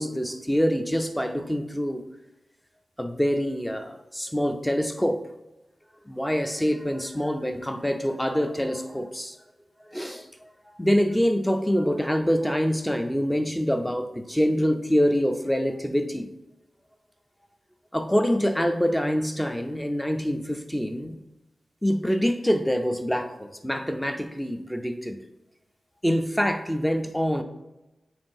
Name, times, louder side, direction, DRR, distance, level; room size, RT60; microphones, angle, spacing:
voice 1, 0.0-2.0 3.0-5.3 6.1-9.4 9.8-16.3 17.9-21.2 21.8-25.2 26.0-27.4, equal, 5° left, 7 dB, 0.4 m, -25 dB
8.6 x 5.7 x 2.6 m, 1.0 s
wide cardioid pair, 170°, 0 cm